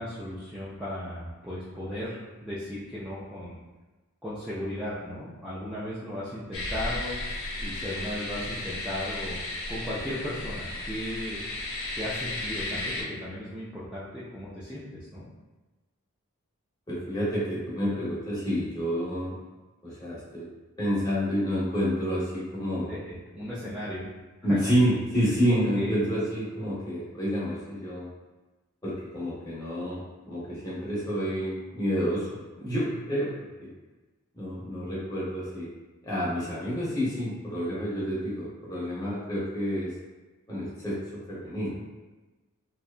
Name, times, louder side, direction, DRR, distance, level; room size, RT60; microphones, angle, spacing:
voice 1, 0.0-3.6 4.2-7.3 7.6-9.4 9.7-11.4 11.9-15.2 22.9-24.1 24.5-24.6 25.5-26.1, left 1 dB, 5° right, -11 dB, 0.3 m, -36 dB
sound 1, 6.5-13.0, left 2 dB, 70° left, 0.7 m, -34 dB
voice 2, 16.9-19.4 19.8-20.5 20.8-22.9 24.4-28.1 28.8-33.3 33.6-33.7 34.3-35.7 36.0-39.9 40.5-41.8, equal, 20° left, -8 dB, 0.8 m, -29 dB
2.7 x 2.2 x 2.4 m, 1.2 s
head